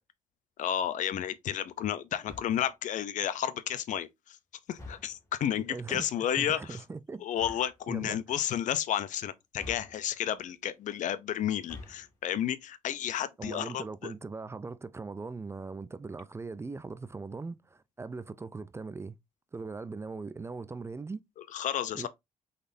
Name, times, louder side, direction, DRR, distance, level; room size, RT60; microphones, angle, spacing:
voice 1, 0.6-4.4 4.7-6.8 7.2-14.1 21.5-22.1, left 10 dB, 70° left, 0.6 m, -32 dB
sound 1, 2.2-2.8 4.7-5.3 7.3-7.8 9.5-10.3 11.5-12.2, left 2 dB, 25° left, 2.0 m, -48 dB
voice 2, 5.5-7.2 7.9-8.2 13.4-19.2 19.5-21.2 21.9-22.1, right 4 dB, 20° right, 0.4 m, -40 dB
5.0 x 4.0 x 2.6 m
cardioid pair, 85°, 14 cm